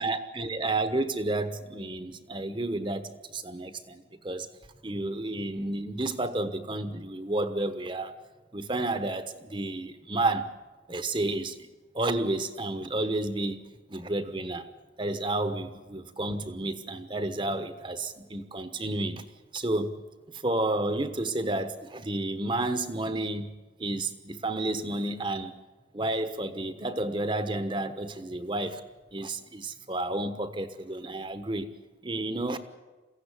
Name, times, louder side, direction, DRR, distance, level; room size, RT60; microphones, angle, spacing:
voice 1, 0.0-4.5 4.8-8.2 8.5-10.5 10.9-11.7 11.9-13.6 13.9-14.7 15.0-19.2 19.5-19.9 20.4-23.5 23.8-25.5 25.9-28.8 29.1-31.7 32.0-32.6, right 2 dB, 25° right, 10 dB, 1.2 m, -31 dB
23.0 x 16.0 x 10.0 m, 1.2 s
head